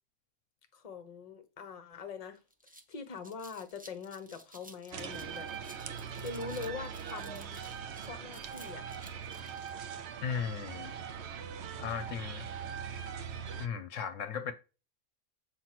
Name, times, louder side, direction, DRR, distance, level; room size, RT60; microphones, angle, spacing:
voice 1, 0.7-2.4 2.9-5.5 6.2-7.6 8.0-8.9, left 5 dB, 30° left, 0.9 m, -43 dB
sound 1, 1.9-2.0 2.3-9.7, right 1 dB, 10° right, 0.5 m, -55 dB
sound 2, 4.9-13.7, right 7 dB, 60° right, 0.9 m, -41 dB
voice 2, 10.2-10.9 11.8-12.5 12.9-13.0 13.6-14.5, left 7 dB, 65° left, 1.0 m, -36 dB
8.1 x 3.0 x 5.8 m
omnidirectional pair, 1.4 m